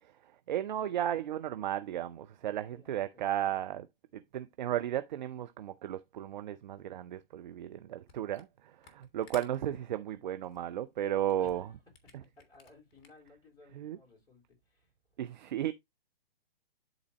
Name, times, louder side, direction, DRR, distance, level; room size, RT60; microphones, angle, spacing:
voice 1, 0.0-3.9 4.1-11.6 13.8-14.0 15.2-15.7, right 11 dB, 50° right, 0.6 m, -34 dB
voice 2, 2.6-3.2 11.4-11.8 12.2-15.2, left 3 dB, 15° left, 3.9 m, -59 dB
Camera, 8.1-8.5 8.8-13.4, left 5 dB, 30° left, 1.8 m, -57 dB
12.0 x 4.0 x 2.9 m
figure-of-eight pair, 125°, 30 cm